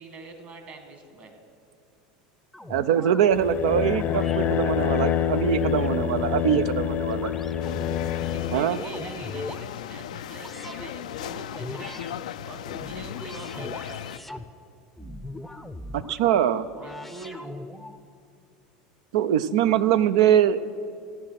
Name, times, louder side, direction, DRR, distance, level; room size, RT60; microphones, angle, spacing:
voice 1, 0.0-1.4 8.3-12.0 12.4-14.2 16.8-17.5, right 3 dB, 45° right, 6 dB, 2.0 m, -43 dB
sound 1, 2.5-3.2 3.9-4.4 4.9-6.7 7.1-8.0 8.5-9.7 10.3-10.9 11.5-12.1 12.6-14.5 15.0-16.2 16.7-18.0, left 1 dB, 5° left, 0.6 m, -40 dB
voice 2, 2.7-7.3 8.5-8.8 15.9-16.7 19.1-20.6, right 9 dB, 80° right, 13 dB, 0.5 m, -22 dB
sound 2, 3.3-8.6, left 9 dB, 40° left, 0.6 m, -26 dB
sound 3, 7.6-14.2, left 10 dB, 90° left, 0.4 m, -37 dB
15.0 x 9.7 x 5.8 m, 2.5 s
supercardioid pair, 105°, 4 cm